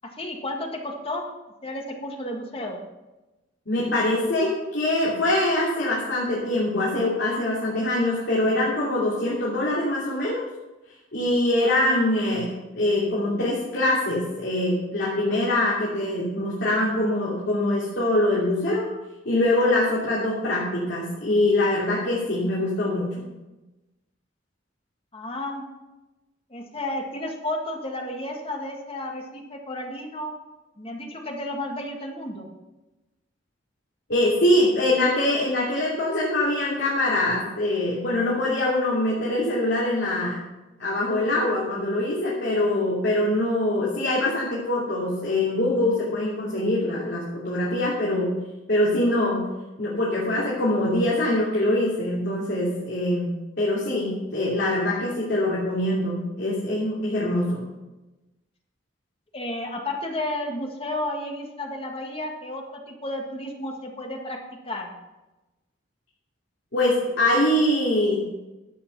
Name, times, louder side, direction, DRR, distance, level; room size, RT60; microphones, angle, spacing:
voice 1, 0.2-1.2 1.6-2.8 25.1-25.7 26.5-30.3 30.8-32.5 59.3-64.4 64.7-64.9, left 1 dB, 30° left, 2 dB, 1.8 m, -32 dB
voice 2, 3.7-10.4 11.1-18.9 19.2-23.3 34.1-40.4 40.8-48.3 48.7-49.4 49.8-57.6 66.7-68.2, left 1 dB, 65° left, -7 dB, 3.1 m, -23 dB
12.0 x 8.4 x 5.5 m, 1.1 s
head